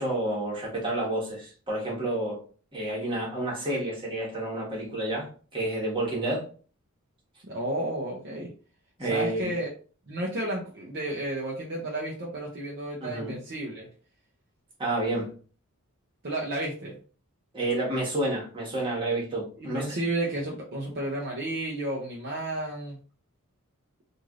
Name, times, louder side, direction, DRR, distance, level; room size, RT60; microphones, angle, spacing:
voice 1, 0.0-2.4 2.7-6.4 9.0-9.5 13.0-13.4 14.8-15.3 17.5-20.0, right 1 dB, 25° right, 1.2 m, -30 dB
voice 2, 7.5-8.5 9.0-9.7 10.1-13.9 16.2-17.0 19.6-23.0, right 1 dB, 50° right, 0.6 m, -32 dB
3.2 x 2.5 x 2.4 m
head